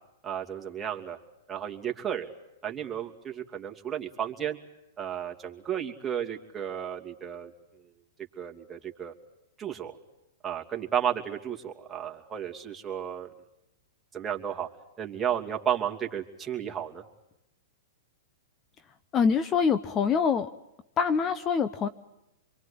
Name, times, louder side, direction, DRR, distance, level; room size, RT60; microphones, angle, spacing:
voice 1, 0.2-1.2 1.5-2.3 2.6-4.6 5.0-7.5 8.4-9.1 9.6-10.0 10.4-13.3 14.1-14.7 15.0-17.0, right 9 dB, 15° right, 1 dB, 2.7 m, -33 dB
voice 2, 19.1-20.5 21.0-21.9, left 6 dB, 25° left, 12 dB, 0.9 m, -25 dB
27.0 x 23.0 x 8.7 m, 0.90 s
hypercardioid pair, 130°, 0 cm